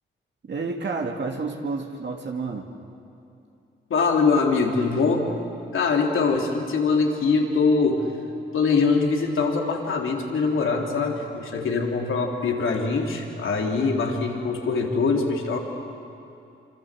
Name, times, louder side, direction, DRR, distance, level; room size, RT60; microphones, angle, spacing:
voice 1, 0.4-2.7, right 4 dB, 55° right, 2 dB, 2.5 m, -30 dB
voice 2, 3.9-5.3 5.7-8.1 8.5-15.6, left 4 dB, 70° left, 1 dB, 3.6 m, -23 dB
25.5 x 25.5 x 7.7 m, 2.6 s
cardioid pair, 65°, 21 cm